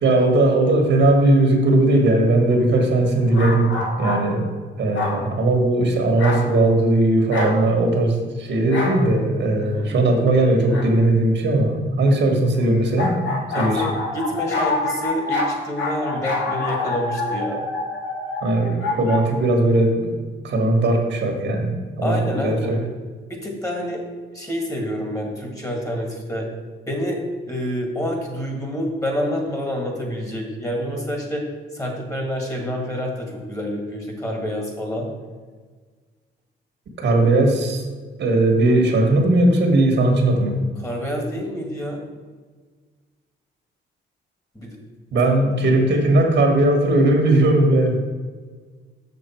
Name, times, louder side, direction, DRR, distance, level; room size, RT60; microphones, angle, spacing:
voice 1, 0.0-4.4 4.8-13.2 13.6-13.8 18.4-20.1 20.4-22.8 37.0-37.8 38.2-40.6 45.1-48.0, right 2 dB, 65° right, 2 dB, 1.6 m, -18 dB
sound 1, 3.3-4.2 4.9-5.2 6.2-6.5 7.3-7.6 8.7-9.0 10.7-10.9 13.0-19.2, left 2 dB, 75° left, 1.7 m, -26 dB
voice 2, 9.6-9.9 12.0-12.4 13.5-17.6 22.0-22.8 23.3-24.0 24.3-26.5 26.9-35.1 40.8-42.0 44.5-44.8 45.3-45.4, equal, 15° left, 1 dB, 1.9 m, -28 dB
6.7 x 6.3 x 4.5 m, 1.5 s
cardioid pair, 90°, 20 cm